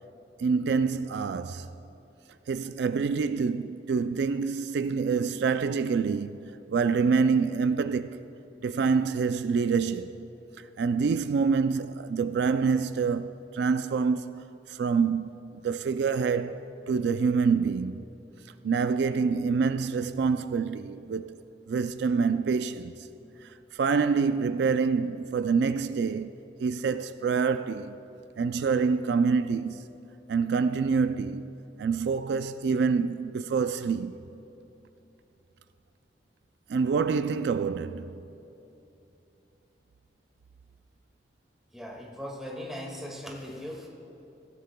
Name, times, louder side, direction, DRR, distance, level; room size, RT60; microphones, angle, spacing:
voice 1, 0.4-1.7 2.5-8.2 8.6-10.3 10.6-18.0 18.6-23.1 23.4-28.0 28.4-29.9 30.3-31.5 31.8-34.2 36.7-38.3, right 5 dB, 75° right, 0.3 m, -27 dB
voice 2, 41.7-43.9, equal, ahead, 1.8 m, -39 dB
24.0 x 15.5 x 2.2 m
head